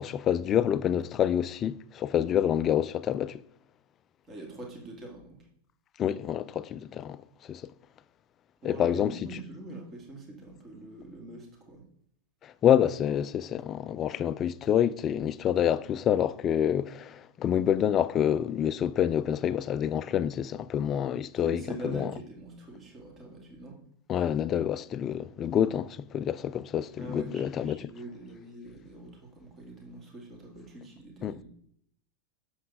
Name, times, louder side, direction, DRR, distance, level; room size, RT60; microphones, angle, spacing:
voice 1, 0.0-3.4 6.0-7.2 7.5-7.6 8.6-9.1 12.4-22.1 24.1-27.9 31.2-31.3, left 9 dB, 30° left, 0.3 m, -27 dB
voice 2, 4.3-5.5 8.6-11.8 21.3-23.8 27.0-31.4, right 2 dB, 25° right, 2.0 m, -43 dB
7.5 x 6.4 x 4.0 m
figure-of-eight pair, 90°, 0 cm